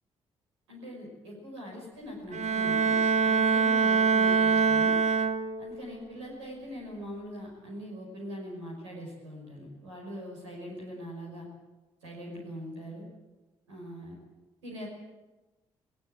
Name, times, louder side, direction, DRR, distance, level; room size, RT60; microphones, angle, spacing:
voice 1, 0.7-5.0 5.6-11.5 12.0-13.0 13.7-14.2 14.6-14.9, equal, 85° right, -1 dB, 5.6 m, -42 dB
Bowed string instrument, 2.3-5.8, right 5 dB, 55° right, 1.5 m, -24 dB
20.0 x 19.0 x 9.2 m, 1.1 s
hypercardioid pair, 40°, 15 cm